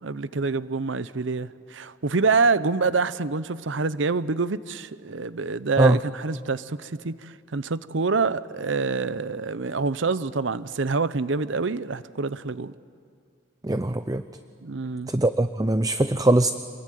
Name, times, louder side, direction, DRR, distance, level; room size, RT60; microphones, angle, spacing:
voice 1, 0.0-12.7 14.6-15.1, right 4 dB, 70° right, 15 dB, 0.7 m, -26 dB
voice 2, 13.6-14.2 15.1-16.5, right 2 dB, 20° right, 10 dB, 0.6 m, -21 dB
27.5 x 21.5 x 9.3 m, 2.2 s
head